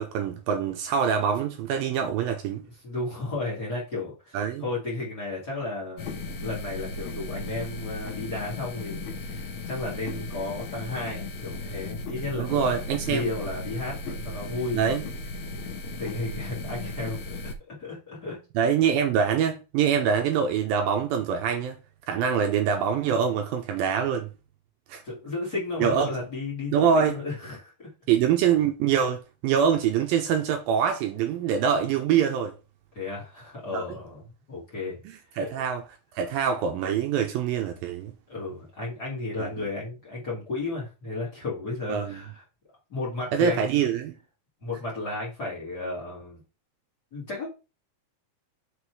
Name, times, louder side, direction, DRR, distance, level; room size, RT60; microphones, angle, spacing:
voice 1, 0.0-2.6 4.3-4.6 12.3-13.3 14.7-15.0 18.6-21.8 22.1-24.3 24.9-25.0 25.8-26.1 26.7-27.2 28.1-32.5 33.7-33.8 35.4-35.8 36.2-38.1 39.4-39.5 41.9-42.2 43.3-44.1, right 7 dB, 80° right, 2.3 m, -24 dB
voice 2, 2.8-6.2 6.4-12.7 13.0-15.1 16.0-18.4 25.0-27.9 32.9-35.0 35.3-35.5 38.3-42.4 42.9-43.7 44.6-46.4 47.1-47.5, left 2 dB, 30° left, 2.7 m, -33 dB
sound 1, 6.0-17.5, left 2 dB, 60° left, 2.1 m, -36 dB
6.2 x 4.9 x 4.7 m
omnidirectional pair, 4.5 m